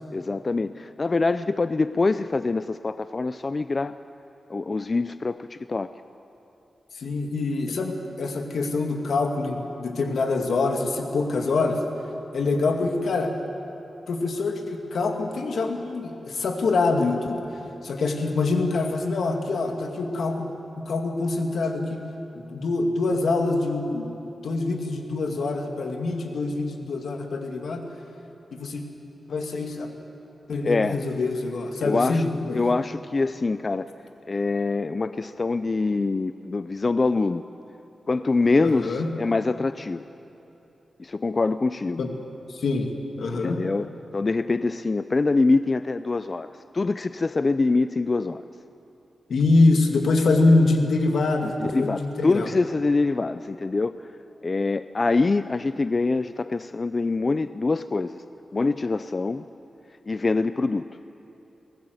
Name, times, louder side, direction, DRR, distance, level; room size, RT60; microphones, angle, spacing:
voice 1, 0.1-3.9 4.5-5.9 30.6-31.0 31.8-32.2 32.5-33.9 34.3-37.4 38.1-40.1 41.0-42.1 43.4-48.4 51.4-53.9 54.4-58.2 58.5-59.4 60.1-60.9, left 3 dB, 35° left, 12 dB, 0.4 m, -24 dB
voice 2, 6.9-11.8 12.3-13.3 14.1-17.4 17.8-22.0 22.5-24.2 24.4-27.8 28.5-28.8 29.3-29.9 30.5-32.6 38.6-39.1 42.0-42.1 42.5-42.9 43.2-43.6 49.3-52.5, left 3 dB, 80° left, 4 dB, 2.2 m, -24 dB
22.0 x 18.5 x 8.0 m, 3.0 s
wide cardioid pair, 100°, 0 cm